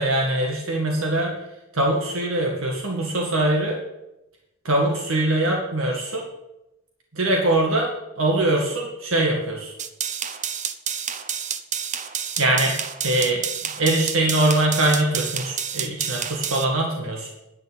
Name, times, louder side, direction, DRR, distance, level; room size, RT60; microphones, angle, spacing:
voice 1, 0.0-1.4 1.7-3.8 4.6-6.2 7.1-7.9 8.2-9.7 12.4-12.8 13.0-17.3, right 1 dB, 75° right, 0 dB, 1.9 m, -22 dB
sound 1, 9.8-16.6, right 8 dB, 35° right, 0.7 m, -29 dB
10.5 x 5.8 x 8.7 m, 0.91 s
head